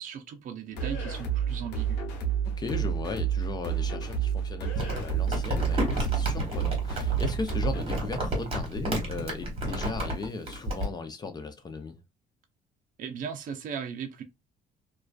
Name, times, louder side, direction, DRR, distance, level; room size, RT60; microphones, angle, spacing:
voice 1, 0.0-2.1 13.0-14.2, right 7 dB, 50° right, 0.5 m, -37 dB
sound 1, 0.7-7.8, right 8 dB, 90° left, 0.8 m, -30 dB
voice 2, 2.6-12.0, left 4 dB, 25° left, 0.4 m, -37 dB
Crumpling crinkling, 4.8-10.9, right 1 dB, 35° right, 1.3 m, -31 dB
2.4 x 2.2 x 2.3 m
cardioid pair, 110°, 17 cm